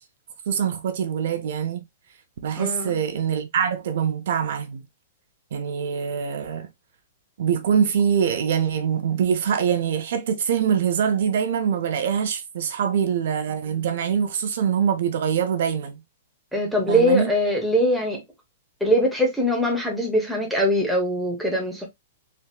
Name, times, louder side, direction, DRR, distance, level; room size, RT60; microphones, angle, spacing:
voice 1, 0.5-1.8 2.4-4.8 5.5-6.7 7.4-16.0 16.9-17.3, right 7 dB, 55° right, 0.5 m, -24 dB
voice 2, 2.6-3.0 16.5-18.2 18.8-21.9, equal, ahead, 0.7 m, -22 dB
3.4 x 2.8 x 2.3 m
hypercardioid pair, 175°, 0 cm